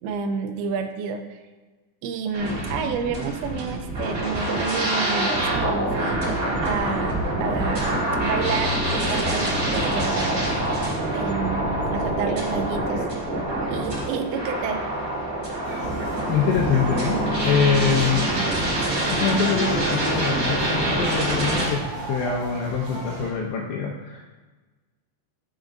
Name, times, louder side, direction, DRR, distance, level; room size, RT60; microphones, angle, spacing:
voice 1, 0.0-1.4 2.0-7.2 7.4-13.1 13.7-14.8, right 5 dB, 85° right, 6 dB, 2.7 m, -30 dB
sound 1, 2.3-21.7, right 1 dB, 45° right, 1.0 m, -25 dB
sound 2, 15.6-23.3, right 1 dB, 70° right, 4.3 m, -37 dB
voice 2, 16.2-18.4 19.1-24.3, left 6 dB, 80° left, -1 dB, 2.6 m, -24 dB
14.0 x 6.0 x 2.6 m, 1.3 s
omnidirectional pair, 5.6 m